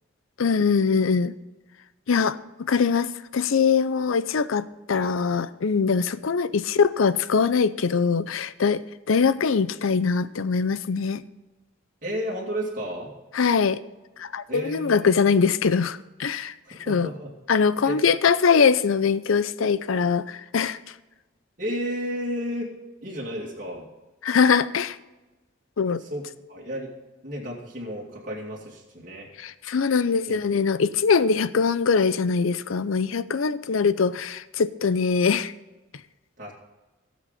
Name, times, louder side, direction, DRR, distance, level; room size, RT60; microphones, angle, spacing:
voice 1, 0.4-1.3 2.1-8.8 9.1-11.2 13.3-13.8 14.2-16.5 16.9-17.1 17.5-20.8 24.2-25.0 25.8-26.0 29.4-35.5, left 5 dB, 85° left, 16 dB, 0.5 m, -22 dB
voice 2, 12.0-13.1 14.5-15.3 16.7-17.3 17.8-18.0 21.6-22.7 23.0-23.9 26.0-26.9 27.2-29.3 30.3-30.8 36.4-36.5, equal, 40° right, -4 dB, 2.5 m, -32 dB
17.5 x 7.4 x 4.1 m, 1.1 s
head